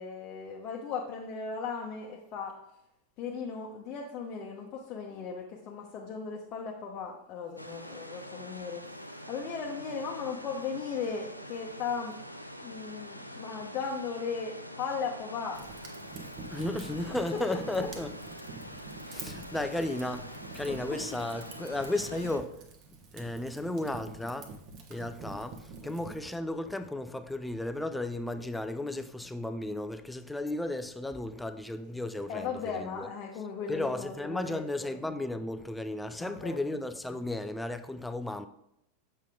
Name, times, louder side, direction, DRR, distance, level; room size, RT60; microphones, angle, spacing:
voice 1, 0.0-2.6 3.2-12.1 12.6-15.7 17.5-17.6 20.7-21.0 32.3-34.9 36.2-36.7, left 5 dB, 35° left, 0.9 m, -37 dB
sound 1, 7.6-22.4, equal, 90° left, 0.5 m, -45 dB
Fire, 15.5-26.2, right 4 dB, 35° right, 1.1 m, -46 dB
voice 2, 16.5-18.1 19.1-22.6 23.1-24.5 24.9-33.1 33.7-38.5, left 2 dB, 5° left, 0.4 m, -34 dB
7.3 x 5.5 x 3.7 m
figure-of-eight pair, 90°, 0 cm